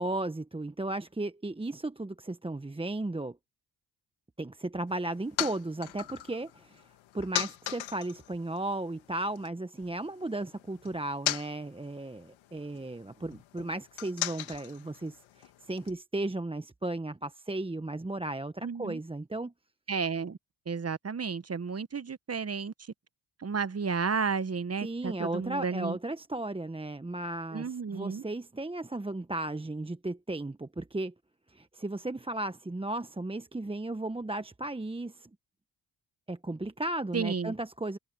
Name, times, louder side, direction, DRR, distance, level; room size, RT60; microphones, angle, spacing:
voice 1, 0.0-3.4 4.4-6.9 7.1-19.5 24.8-31.1 31.5-35.3 36.3-38.0, right 2 dB, 10° right, 1.0 m, -35 dB
sound 1, 4.9-9.5 9.8-15.9, left 13 dB, 85° left, 1.8 m, -39 dB
voice 2, 18.6-19.0 19.9-20.4 20.7-22.7 23.4-26.0 27.5-28.2 37.1-37.5, right 5 dB, 30° right, 1.1 m, -32 dB
supercardioid pair, 55°, 45 cm